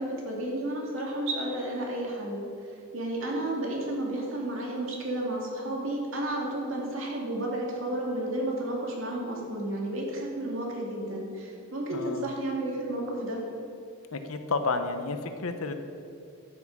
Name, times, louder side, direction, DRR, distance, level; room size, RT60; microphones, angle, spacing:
voice 1, 0.0-2.4 2.9-13.4, right 1 dB, 60° right, -1 dB, 2.3 m, -32 dB
voice 2, 11.9-12.3 14.1-15.7, left 3 dB, 75° left, 8 dB, 0.8 m, -31 dB
13.0 x 6.1 x 6.0 m, 2.5 s
head